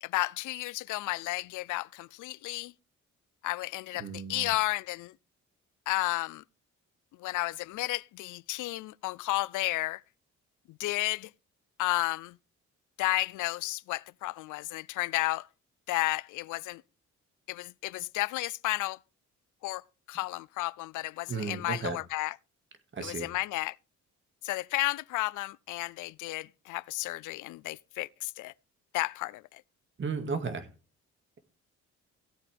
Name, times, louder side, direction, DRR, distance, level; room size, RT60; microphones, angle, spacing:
voice 1, 0.0-2.7 3.4-5.2 5.9-6.4 7.2-10.0 10.7-11.3 11.8-12.4 13.0-15.5 15.9-16.8 17.5-19.0 19.6-22.4 23.0-23.8 24.4-28.5 28.9-29.6, left 19 dB, 80° left, 0.5 m, -32 dB
voice 2, 4.0-4.5 21.3-22.0 22.9-23.3 30.0-30.7, right 4 dB, 40° right, 2.1 m, -34 dB
16.5 x 8.4 x 3.4 m
cardioid pair, 90°, 30 cm